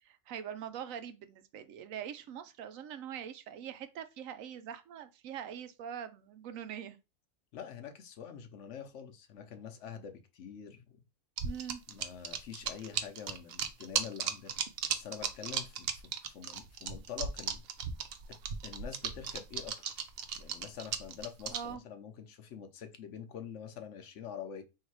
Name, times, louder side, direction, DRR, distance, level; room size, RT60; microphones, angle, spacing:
voice 1, 0.0-7.0 11.4-11.8 21.5-21.8, right 9 dB, 80° right, 1.0 m, -43 dB
voice 2, 7.5-11.0 11.9-14.5 14.9-17.6 18.6-19.8 20.4-24.6, left 8 dB, 65° left, 0.9 m, -46 dB
sound 1, 11.4-21.7, right 7 dB, 60° right, 0.7 m, -36 dB
3.2 x 2.8 x 4.6 m
omnidirectional pair, 1.4 m